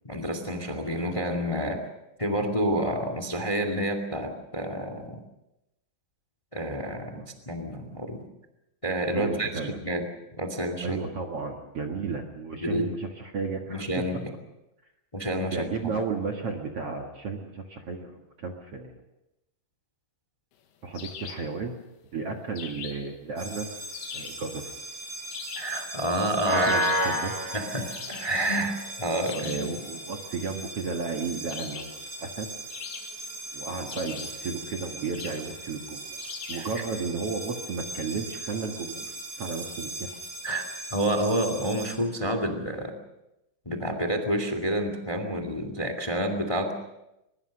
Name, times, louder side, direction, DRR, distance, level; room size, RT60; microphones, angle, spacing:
voice 1, 0.0-1.8 2.2-5.2 6.5-8.2 8.8-10.1 10.4-11.0 12.6-12.9 13.7-14.3 15.1-15.9 25.5-26.7 27.5-29.8 36.5-36.8 40.4-42.9 43.6-46.7, right 1 dB, 25° left, 7 dB, 0.7 m, -29 dB
voice 2, 9.1-9.8 10.8-14.0 15.5-18.1 18.4-19.0 20.8-21.8 22.1-23.7 24.1-24.7 26.5-27.5 29.3-32.5 33.5-36.2 36.5-40.2, right 4 dB, 60° right, 2 dB, 1.5 m, -33 dB
sound 1, 20.9-21.5 22.6-23.2 23.9-24.4 25.3-25.8 26.6-27.1 27.9-28.4 29.3-29.7 31.5-32.0 32.7-33.4 33.9-34.4 35.1-35.5 36.2-36.7, left 8 dB, 80° left, 3.9 m, -41 dB
sound 2, 23.4-41.9, right 1 dB, 30° right, 5.5 m, -36 dB
23.0 x 21.5 x 6.5 m, 0.90 s
omnidirectional pair, 5.2 m